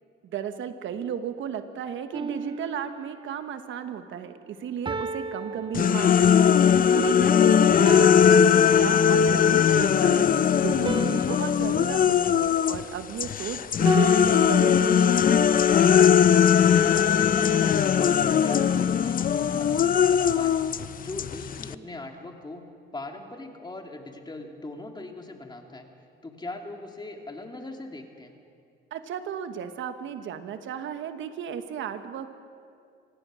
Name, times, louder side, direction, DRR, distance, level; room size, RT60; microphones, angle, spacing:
voice 1, 0.2-10.3 10.6-15.3 28.9-32.3, right 8 dB, 75° right, 9 dB, 1.3 m, -34 dB
sound 1, 2.1-3.4 4.9-6.5 7.9-9.3 10.9-13.3 13.9-15.2, right 4 dB, 25° right, 0.7 m, -35 dB
sound 2, 5.7-12.8 13.2-21.7, left 8 dB, 45° left, 0.6 m, -20 dB
voice 2, 16.6-17.8 18.2-20.6 21.0-22.6 22.9-25.9 26.2-28.3, left 2 dB, 20° left, 3 dB, 2.6 m, -40 dB
25.0 x 17.5 x 6.3 m, 2.4 s
cardioid pair, 90°, 20 cm